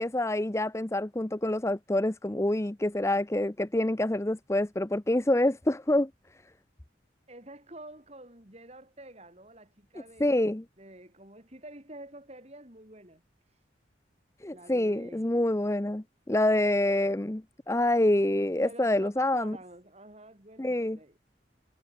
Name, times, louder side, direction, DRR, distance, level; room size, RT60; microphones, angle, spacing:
voice 1, 0.0-6.1 10.2-10.6 14.4-19.6 20.6-21.0, left 1 dB, 15° left, 0.7 m, -27 dB
voice 2, 7.3-13.6 14.5-15.2 18.6-21.2, right 1 dB, 35° right, 6.7 m, -49 dB
head